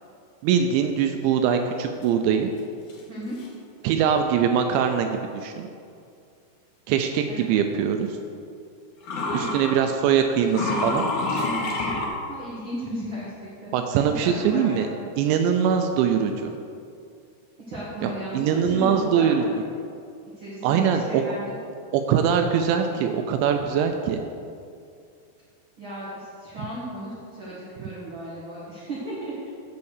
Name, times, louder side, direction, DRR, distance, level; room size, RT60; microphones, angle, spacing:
voice 1, 0.4-2.5 3.8-5.1 5.3-5.7 6.9-8.1 9.3-11.1 13.7-14.9 15.2-16.5 18.0-19.4 20.6-21.2 21.9-24.2, right 8 dB, 85° right, 5 dB, 2.8 m, -22 dB
sound 1, 2.9-3.0 3.4-3.5 7.8-7.9 9.0-9.8 10.4-12.1, left 2 dB, 65° left, 2.1 m, -27 dB
voice 2, 9.1-9.7 12.3-13.3 13.6-13.8 14.1-15.1 17.7-19.7 20.4-21.6 25.8-29.5, right 1 dB, 65° right, -7 dB, 1.2 m, -35 dB
8.3 x 7.0 x 6.5 m, 2.4 s
omnidirectional pair, 5.2 m